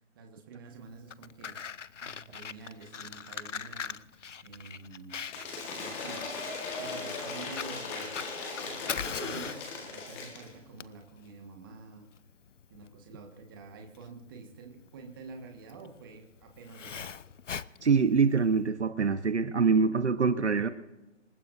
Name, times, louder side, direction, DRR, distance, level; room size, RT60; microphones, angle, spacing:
voice 1, 0.0-1.6 2.0-5.3 5.8-6.2 6.8-12.1 12.7-17.1, right 4 dB, 20° right, 3 dB, 1.7 m, -48 dB
Fire, 0.9-18.6, left 7 dB, 75° left, 0.7 m, -42 dB
Cheering / Applause / Crowd, 5.3-10.5, left 4 dB, 10° left, 1.6 m, -38 dB
voice 2, 17.8-20.7, right 5 dB, 65° right, 11 dB, 1.2 m, -24 dB
27.0 x 14.0 x 2.7 m, 1.0 s
figure-of-eight pair, 160°, 37 cm